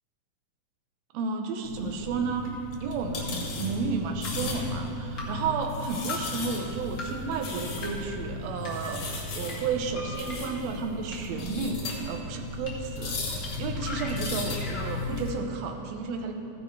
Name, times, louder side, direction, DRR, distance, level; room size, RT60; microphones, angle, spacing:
voice 1, 1.1-16.3, right 5 dB, 70° right, 4 dB, 1.8 m, -32 dB
sound 1, 1.6-15.3, left 3 dB, 75° left, 3.1 m, -35 dB
sound 2, 3.2-3.3 4.2-4.4 5.2-5.3 6.1-6.2 7.0-7.1 7.8-7.9 8.7-8.8 9.5-9.6 10.3-10.4 11.1-11.2 11.9-12.0 12.7-12.8 13.4-13.5 13.8-14.9, left 4 dB, 35° left, 1.7 m, -38 dB
Piano, 10.0-11.9 12.6-13.3 13.6-13.7 13.9-14.0, left 2 dB, 50° left, 2.8 m, -46 dB
15.0 x 10.5 x 3.3 m, 2.8 s
omnidirectional pair, 3.6 m